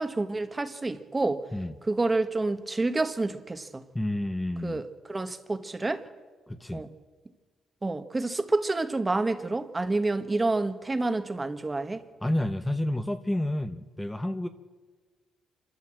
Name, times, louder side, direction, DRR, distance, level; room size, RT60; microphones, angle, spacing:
voice 1, 0.0-1.4 1.9-3.8 4.6-4.8 5.1-6.0 6.7-6.9 7.8-12.0, right 2 dB, 20° right, 1.4 m, -28 dB
voice 2, 3.9-4.8 6.5-6.9 12.2-14.5, left 1 dB, 10° left, 0.9 m, -30 dB
26.5 x 13.0 x 7.7 m
cardioid pair, 90°, 0 cm